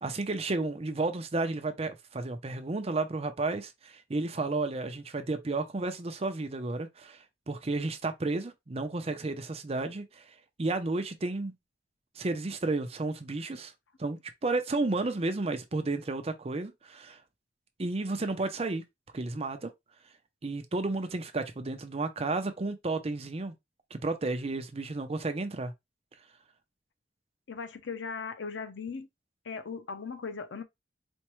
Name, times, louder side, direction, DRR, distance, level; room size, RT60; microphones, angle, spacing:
voice 1, 0.0-10.2 10.6-11.5 12.2-13.7 14.0-17.2 17.8-18.8 19.1-19.7 20.4-23.5 23.9-25.7, right 3 dB, 35° right, 0.6 m, -32 dB
voice 2, 27.5-29.1 29.4-30.6, left 5 dB, 85° left, 0.6 m, -38 dB
4.3 x 2.2 x 3.0 m
head